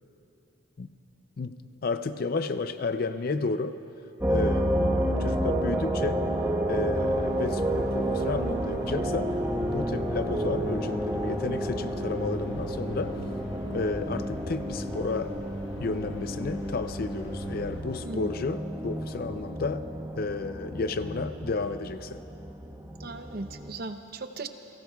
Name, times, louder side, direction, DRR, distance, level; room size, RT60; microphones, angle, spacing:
voice 1, 1.8-3.8 4.3-6.2 6.7-13.2 13.7-15.4 15.8-19.9 20.2-22.2, left 3 dB, 50° left, 11 dB, 0.5 m, -32 dB
sound 1, 4.2-23.7, right 1 dB, 10° right, 0.9 m, -30 dB
sound 2, 6.9-17.8, left 1 dB, 65° left, 0.9 m, -44 dB
voice 2, 23.0-24.5, right 3 dB, 50° right, 8 dB, 0.7 m, -37 dB
30.0 x 18.5 x 2.3 m, 2.8 s
head